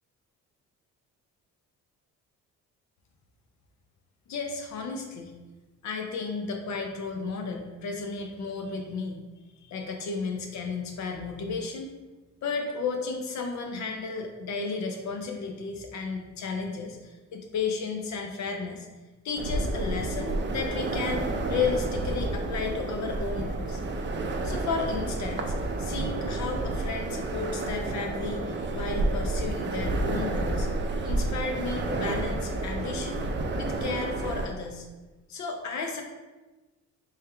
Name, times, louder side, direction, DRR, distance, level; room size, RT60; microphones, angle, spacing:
voice 1, 4.3-5.3 5.8-9.2 9.6-12.0 12.4-18.9 19.2-23.8 24.4-30.7 31.0-33.2 33.6-34.9 35.3-36.0, left 4 dB, 65° left, 3 dB, 0.6 m, -33 dB
sound 1, 19.4-34.5, right 2 dB, 40° right, 0.5 m, -30 dB
3.4 x 3.4 x 3.3 m, 1.2 s
cardioid pair, 90°, 30 cm